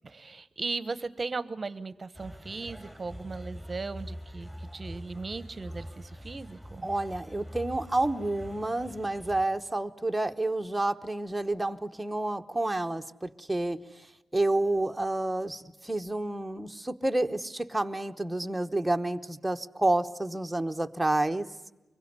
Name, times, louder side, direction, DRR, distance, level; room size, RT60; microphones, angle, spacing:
voice 1, 0.0-6.9, right 3 dB, 30° right, 15 dB, 1.1 m, -37 dB
sound 1, 2.1-9.5, equal, 10° left, 3.7 m, -44 dB
voice 2, 6.8-13.8 14.3-21.5, right 2 dB, 10° right, 5 dB, 1.1 m, -29 dB
25.0 x 22.5 x 9.6 m, 1.0 s
wide cardioid pair, 120°, 0 cm